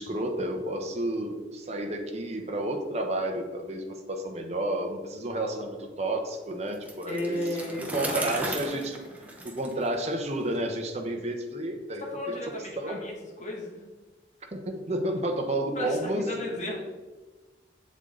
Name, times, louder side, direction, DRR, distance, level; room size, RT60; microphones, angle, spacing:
voice 1, 0.0-7.4 7.8-9.0 9.4-12.4 12.8-13.0 14.5-16.6, right 1 dB, 35° right, 2 dB, 1.1 m, -31 dB
Bicycle, 6.7-10.6, right 1 dB, 10° right, 1.0 m, -37 dB
voice 2, 7.1-8.6 12.0-13.8 15.8-16.8, left 1 dB, 40° left, -1 dB, 2.1 m, -34 dB
8.0 x 7.3 x 4.0 m, 1.3 s
head